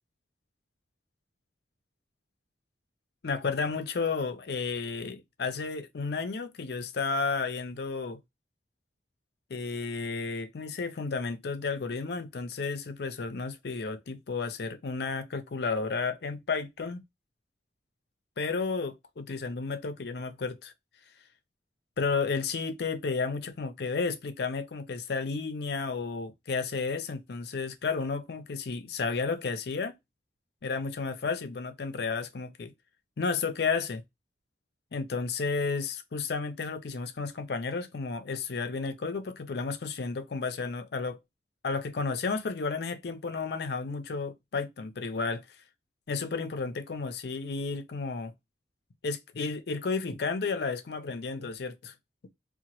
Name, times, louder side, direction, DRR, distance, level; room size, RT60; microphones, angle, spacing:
voice 1, 3.2-8.2 9.5-17.0 18.4-20.7 22.0-30.0 30.6-32.7 33.2-34.0 34.9-41.2 41.6-45.4 46.1-48.3 49.0-51.9, left 4 dB, 60° left, 0.5 m, -32 dB
2.8 x 2.2 x 2.9 m
head